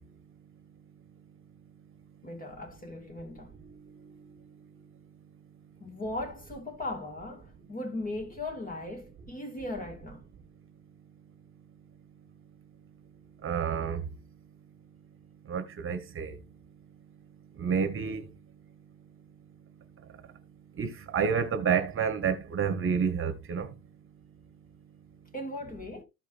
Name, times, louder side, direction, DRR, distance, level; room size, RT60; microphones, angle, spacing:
voice 1, 2.2-3.5 5.8-10.2 25.3-26.0, left 2 dB, 25° left, 2.2 m, -38 dB
voice 2, 13.4-14.0 15.5-16.4 17.6-18.2 20.8-23.7, right 6 dB, 40° right, 1.3 m, -29 dB
14.5 x 5.0 x 2.5 m
cardioid pair, 135°, 33 cm